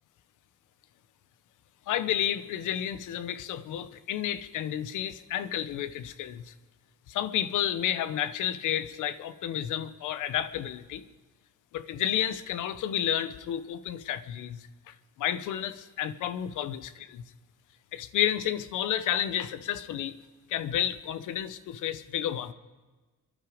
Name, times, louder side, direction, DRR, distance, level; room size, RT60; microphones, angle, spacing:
voice 1, 1.9-6.5 7.1-11.0 11.7-16.8 17.9-20.2 20.5-22.5, left 11 dB, 85° left, 13 dB, 1.0 m, -31 dB
24.0 x 11.5 x 5.0 m, 1.3 s
cardioid pair, 90°, 30 cm